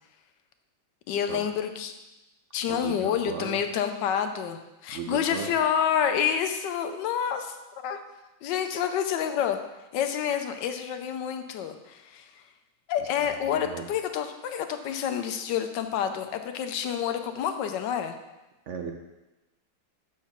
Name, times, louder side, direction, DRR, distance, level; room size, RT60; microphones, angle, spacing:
voice 1, 1.1-1.9 2.5-7.6 7.8-8.0 8.4-9.6 9.9-12.4 12.9-18.2, left 8 dB, 75° left, 7 dB, 1.3 m, -28 dB
voice 2, 2.7-3.6 4.9-5.5 13.0-13.8 18.7-18.9, right 6 dB, 65° right, 3 dB, 0.7 m, -37 dB
7.7 x 4.7 x 5.8 m, 1.0 s
omnidirectional pair, 2.0 m